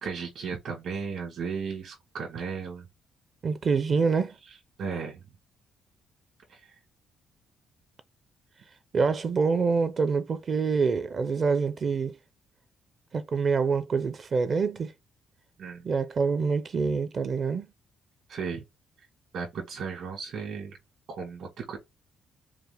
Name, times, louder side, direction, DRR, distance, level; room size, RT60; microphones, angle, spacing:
voice 1, 0.0-2.9 4.8-5.2 6.5-6.7 15.6-15.8 18.3-18.6 19.3-20.8 21.1-21.8, right 5 dB, 70° right, 1.8 m, -35 dB
voice 2, 3.4-4.3 8.9-12.2 13.1-14.9 15.8-17.7, right 5 dB, 45° right, 0.6 m, -26 dB
4.8 x 2.1 x 3.3 m
cardioid pair, 90°, 0 cm